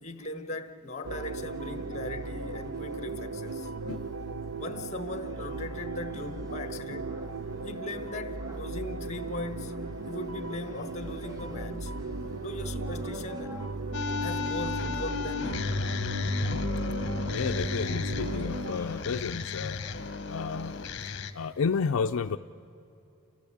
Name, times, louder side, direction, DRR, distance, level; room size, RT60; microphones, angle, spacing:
voice 1, 0.0-3.7 4.6-7.1 7.6-11.9 12.4-13.5 14.2-15.9, left 2 dB, 30° left, 1.3 m, -39 dB
sound 1, 1.0-19.9, right 1 dB, 15° right, 1.0 m, -50 dB
sound 2, 1.0-18.8, right 3 dB, 65° right, 0.6 m, -36 dB
sound 3, 13.9-21.3, left 4 dB, 50° left, 1.0 m, -33 dB
voice 2, 17.3-19.8 20.3-20.7 21.3-22.4, left 5 dB, 70° left, 0.4 m, -31 dB
29.0 x 15.5 x 8.6 m
head